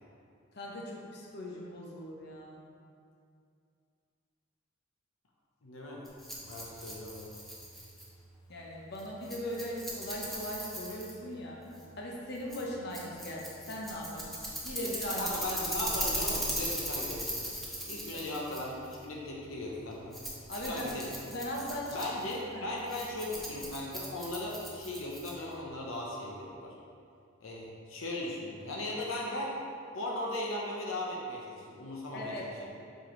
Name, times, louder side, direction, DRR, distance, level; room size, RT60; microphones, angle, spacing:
voice 1, 0.5-2.6 8.5-11.6 12.0-15.3 18.1-18.2 20.5-20.9 21.3-22.0 22.5-22.6 32.1-32.4, left 1 dB, 55° left, -3 dB, 0.9 m, -39 dB
voice 2, 5.6-6.0 6.4-7.3 15.2-17.3 17.9-20.2 20.7-21.1 21.9-26.7 27.4-29.5 29.9-32.7, left 1 dB, 80° left, -3 dB, 0.8 m, -37 dB
Rattle, 6.1-25.6, equal, ahead, 0.8 m, -39 dB
7.8 x 4.5 x 3.1 m, 2.4 s
head